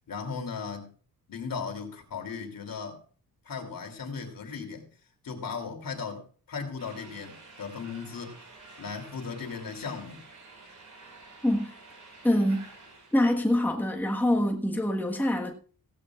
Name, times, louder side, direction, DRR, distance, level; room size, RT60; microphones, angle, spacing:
voice 1, 0.1-0.9 1.3-3.0 3.4-4.9 5.2-8.4 8.8-10.2, left 5 dB, 60° left, 2.9 m, -37 dB
sound 1, 6.8-13.1, right 3 dB, 55° right, 5.3 m, -50 dB
voice 2, 12.2-12.7 13.1-15.5, left 1 dB, 5° left, 1.4 m, -25 dB
16.5 x 14.0 x 2.4 m
wide cardioid pair, 115°, 37 cm